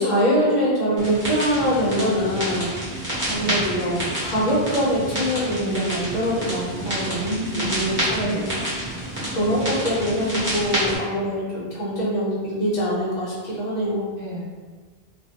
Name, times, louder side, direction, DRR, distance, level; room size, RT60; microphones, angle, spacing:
voice 1, 0.0-3.0 3.3-8.7 9.2-14.1, equal, 45° left, -8 dB, 0.8 m, -24 dB
sound 1, 1.0-11.0, right 1 dB, 10° right, 0.9 m, -29 dB
voice 2, 7.3-8.4 14.2-14.4, equal, 60° right, -5 dB, 0.8 m, -32 dB
2.3 x 2.1 x 2.7 m, 1.4 s
omnidirectional pair, 1.1 m